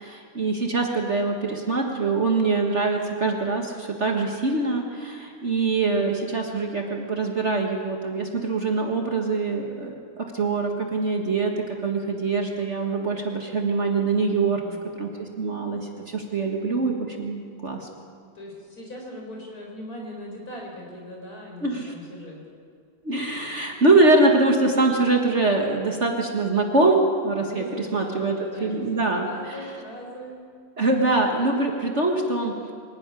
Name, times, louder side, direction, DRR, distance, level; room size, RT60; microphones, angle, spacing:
voice 1, 0.4-1.4 1.7-3.6 4.0-4.8 5.4-9.6 10.4-11.5 11.8-14.6 15.0-15.1 15.4-15.8 16.3-16.9 17.2-17.8 21.6-21.8 23.1-28.3 28.6-29.3 30.8-32.5, right 3 dB, 40° right, 1 dB, 1.8 m, -23 dB
voice 2, 14.3-14.8 18.3-22.4 27.4-30.4, equal, 50° left, -1 dB, 5.1 m, -40 dB
24.0 x 11.0 x 9.7 m, 2.3 s
omnidirectional pair, 2.0 m